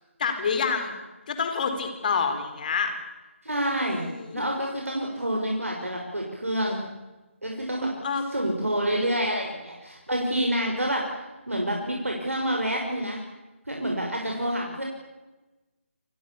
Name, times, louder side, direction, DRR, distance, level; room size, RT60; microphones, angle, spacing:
voice 1, 0.2-0.9 1.3-2.9 3.8-4.5 8.0-8.2, left 5 dB, 40° left, 7 dB, 4.8 m, -27 dB
voice 2, 3.4-4.1 4.3-6.8 7.4-7.9 8.3-11.1 11.5-13.2 13.7-14.8, right 1 dB, 85° right, 0 dB, 6.3 m, -28 dB
29.5 x 23.5 x 7.2 m, 1.1 s
figure-of-eight pair, 150°, 7 cm